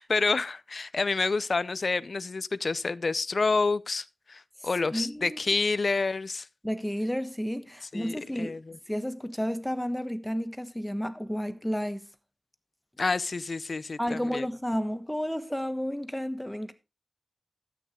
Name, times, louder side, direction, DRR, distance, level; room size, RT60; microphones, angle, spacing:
voice 1, 0.0-6.5 7.9-8.8 13.0-14.5, left 3 dB, 60° left, 0.6 m, -28 dB
voice 2, 4.9-5.4 6.6-8.6 8.9-12.0 14.0-16.7, equal, 5° left, 1.2 m, -31 dB
13.0 x 8.7 x 3.8 m
wide cardioid pair, 80°, 0 cm